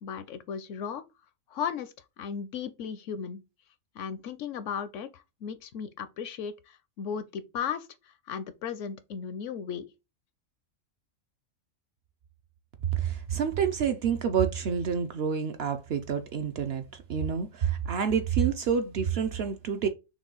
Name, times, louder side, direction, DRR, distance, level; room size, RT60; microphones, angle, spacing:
voice 1, 0.0-1.0 1.5-3.4 4.0-9.9, left 7 dB, 70° left, 0.9 m, -36 dB
voice 2, 12.9-19.9, right 7 dB, 60° right, 0.7 m, -28 dB
6.0 x 2.3 x 3.8 m
omnidirectional pair, 1.4 m